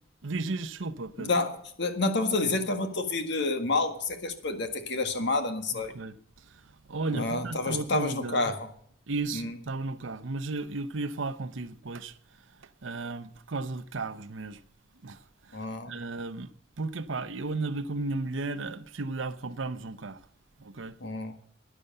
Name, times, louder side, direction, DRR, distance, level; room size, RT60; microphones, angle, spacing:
voice 1, 0.2-1.3 5.8-8.5 9.1-12.2 12.6-14.6 15.0-16.5 16.8-20.2 20.6-21.0, right 3 dB, 80° right, 0.8 m, -34 dB
voice 2, 1.2-5.9 7.1-8.7 9.3-9.5 15.5-15.9 21.0-21.3, left 3 dB, 60° left, 1.8 m, -29 dB
12.5 x 10.0 x 6.6 m
head